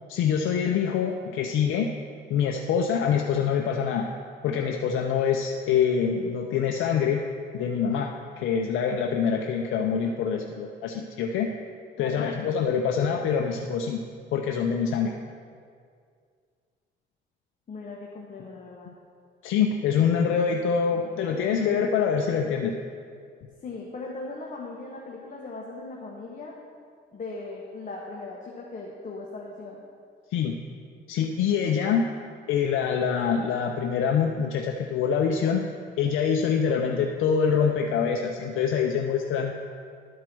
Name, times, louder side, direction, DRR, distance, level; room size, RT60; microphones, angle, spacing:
voice 1, 0.1-1.9 2.3-4.1 4.4-7.2 7.5-11.5 12.0-14.0 14.3-15.2 19.4-22.8 30.3-30.6 31.1-32.1 32.5-35.6 36.0-39.5, left 7 dB, 85° left, 3 dB, 0.6 m, -25 dB
voice 2, 17.7-18.9 20.9-21.5 23.6-26.5 27.1-29.8, left 3 dB, 40° left, -2 dB, 1.2 m, -39 dB
11.5 x 4.7 x 6.0 m, 2.2 s
cardioid pair, 90°, 20 cm